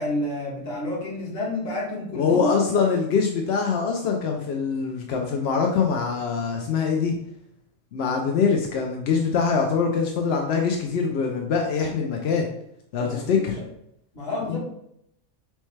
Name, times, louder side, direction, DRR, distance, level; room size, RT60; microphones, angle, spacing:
voice 1, 0.0-2.6 13.0-13.5 14.1-14.6, left 1 dB, 45° left, -3 dB, 1.4 m, -29 dB
voice 2, 2.2-7.2 7.9-12.5 12.9-13.6 14.5-14.6, left 5 dB, 65° left, 2 dB, 0.6 m, -23 dB
6.3 x 2.2 x 3.2 m, 0.74 s
omnidirectional pair, 1.5 m